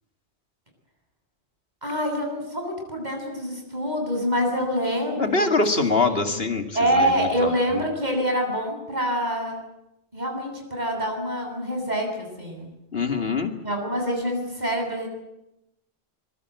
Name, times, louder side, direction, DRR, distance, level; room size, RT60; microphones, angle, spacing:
voice 1, 1.8-5.5 5.8-6.3 6.7-9.6 10.1-12.7 13.6-15.1, equal, 40° right, 3 dB, 7.8 m, -26 dB
voice 2, 5.2-7.8 12.9-13.6, left 3 dB, 60° left, 6 dB, 2.5 m, -24 dB
25.0 x 23.0 x 8.3 m, 0.86 s
omnidirectional pair, 1.1 m